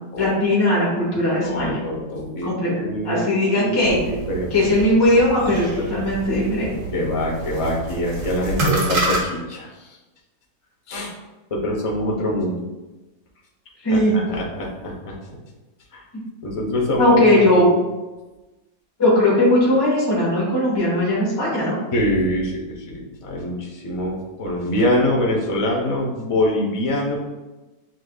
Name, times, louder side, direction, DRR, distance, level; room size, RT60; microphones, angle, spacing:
voice 1, 0.2-1.8 2.4-2.7 3.0-4.0 4.5-6.7 13.8-14.2 17.0-17.7 19.0-21.8, left 1 dB, 15° left, -5 dB, 0.9 m, -18 dB
voice 2, 1.4-4.5 6.9-10.0 10.9-11.1 11.5-12.6 13.9-15.1 15.9-16.0 16.4-17.7 21.9-27.2, left 1 dB, 45° left, -3 dB, 0.4 m, -24 dB
sound 1, 3.8-9.2, right 2 dB, 80° right, 1.7 m, -28 dB
7.4 x 2.6 x 2.3 m, 1.1 s
omnidirectional pair, 1.9 m